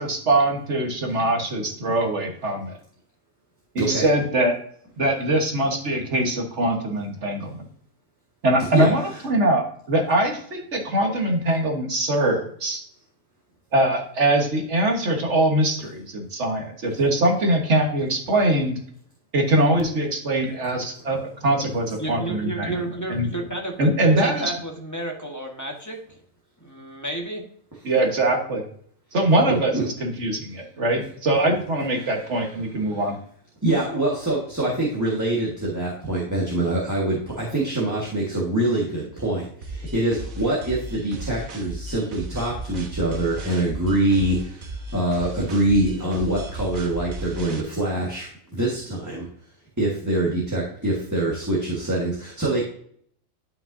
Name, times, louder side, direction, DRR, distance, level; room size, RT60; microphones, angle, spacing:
voice 1, 0.0-2.7 3.7-4.5 5.0-7.5 8.4-12.8 13.7-18.8 19.3-22.7 23.1-23.3 23.8-24.5 27.8-28.6 29.1-33.1, right 1 dB, 60° right, 2 dB, 1.6 m, -22 dB
voice 2, 3.8-4.1 8.7-9.2 29.7-29.8 32.0-32.1 33.6-44.4 44.9-49.3 49.8-52.7, right 1 dB, 15° right, -5 dB, 1.5 m, -24 dB
voice 3, 22.0-26.0 26.6-27.4, right 2 dB, 15° left, 1 dB, 1.2 m, -31 dB
sound 1, 39.6-47.6, right 1 dB, 85° right, 1.5 m, -35 dB
10.5 x 5.7 x 2.7 m, 0.62 s
omnidirectional pair, 1.4 m